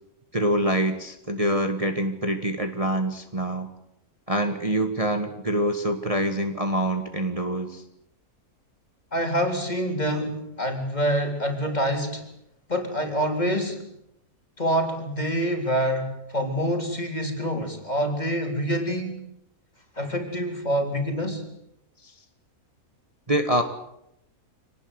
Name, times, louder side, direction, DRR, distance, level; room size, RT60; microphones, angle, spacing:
voice 1, 0.3-3.7 4.3-7.8 22.0-22.1 23.3-23.6, right 1 dB, 25° right, 5 dB, 1.8 m, -25 dB
voice 2, 9.1-12.3 12.7-13.9 14.6-19.2 20.0-21.5, equal, 30° left, 4 dB, 3.9 m, -26 dB
26.5 x 19.0 x 8.2 m, 0.79 s
omnidirectional pair, 1.6 m